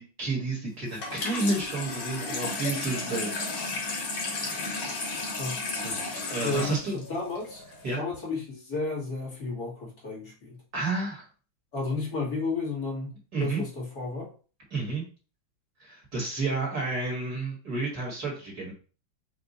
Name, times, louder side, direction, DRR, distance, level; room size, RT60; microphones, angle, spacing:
voice 1, 0.0-3.3 5.8-6.0 6.3-6.9 7.8-8.0 10.7-11.3 13.3-13.6 14.7-15.0 15.8-18.7, right 3 dB, 50° right, -2 dB, 2.0 m, -30 dB
Water tap faucet / Sink (filling or washing), 0.9-7.9, left 3 dB, 80° left, 2.1 m, -33 dB
voice 2, 6.4-7.6 8.0-10.6 11.7-14.3, left 3 dB, 50° left, -5 dB, 2.0 m, -32 dB
5.1 x 2.4 x 4.0 m, 0.37 s
omnidirectional pair, 2.2 m